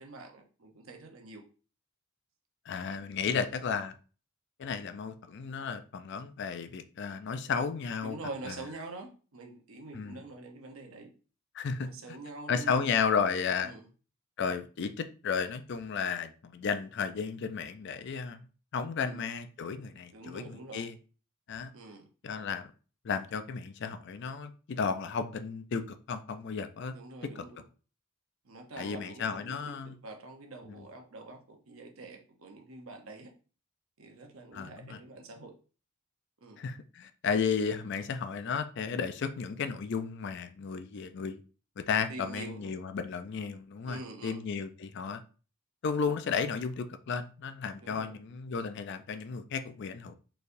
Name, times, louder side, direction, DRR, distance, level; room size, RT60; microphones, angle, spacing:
voice 1, 0.0-1.4 3.3-3.5 8.0-11.1 11.8-12.9 13.6-13.9 19.0-19.2 20.1-20.9 21.7-22.1 26.9-27.6 28.4-33.3 34.0-35.5 36.4-36.6 42.1-42.8 43.8-44.4 47.8-48.2, right 2 dB, 80° right, 0.9 m, -45 dB
voice 2, 2.7-3.9 4.6-8.2 8.4-8.6 9.9-10.2 11.5-11.9 12.5-13.7 14.4-18.5 18.7-21.0 21.5-21.7 22.2-22.7 23.0-26.9 27.4-27.5 28.8-30.0 30.6-30.9 34.5-35.0 36.6-41.4 41.8-45.2 45.8-50.1, left 6 dB, 55° left, 0.4 m, -33 dB
4.4 x 3.2 x 2.6 m
head